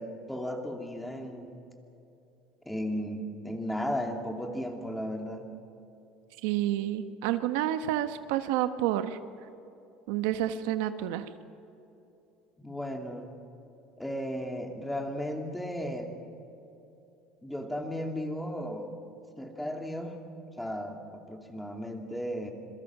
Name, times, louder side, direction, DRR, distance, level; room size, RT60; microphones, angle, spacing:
voice 1, 0.0-1.6 2.6-5.4 12.6-13.3 14.0-16.1 17.4-18.9 19.4-20.2 20.6-22.5, equal, 5° left, 3 dB, 2.8 m, -35 dB
voice 2, 6.4-9.2 10.1-11.3, right 12 dB, 85° right, 9 dB, 1.2 m, -29 dB
27.0 x 22.0 x 6.1 m, 2.8 s
cardioid pair, 135°, 0 cm